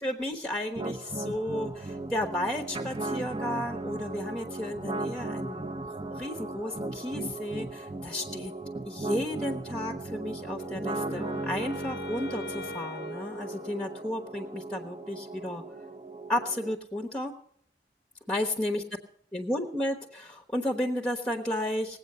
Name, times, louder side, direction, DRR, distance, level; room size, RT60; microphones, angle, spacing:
voice 1, 0.0-8.5 8.8-15.6 16.3-17.3 18.3-18.8 19.3-22.0, left 1 dB, 5° left, 3 dB, 1.1 m, -33 dB
sound 1, 0.7-16.7, right 2 dB, 25° right, 0.9 m, -37 dB
Wind instrument woodwind instrument, 10.5-14.4, left 4 dB, 60° left, 0.5 m, -43 dB
19.0 x 8.3 x 6.7 m, 0.64 s
head